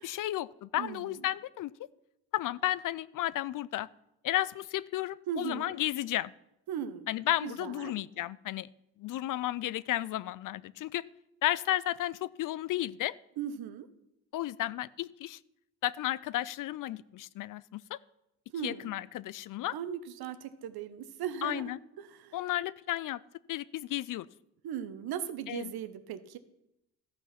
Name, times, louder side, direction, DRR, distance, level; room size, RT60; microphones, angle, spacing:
voice 1, 0.0-1.7 2.3-3.9 4.2-6.3 7.1-8.7 9.0-11.0 11.4-13.1 14.3-15.4 15.8-18.0 18.6-19.8 21.4-21.8 22.3-23.2 23.5-24.3 25.5-25.7, left 14 dB, 50° left, 20 dB, 0.4 m, -33 dB
voice 2, 0.8-1.1 5.3-5.7 6.7-7.1 7.4-7.9 13.4-13.9 18.5-18.9 19.7-21.6 22.0-22.4 24.6-26.4, right 8 dB, 60° right, 12 dB, 1.0 m, -38 dB
13.5 x 5.7 x 5.8 m, 0.85 s
supercardioid pair, 70°, 41 cm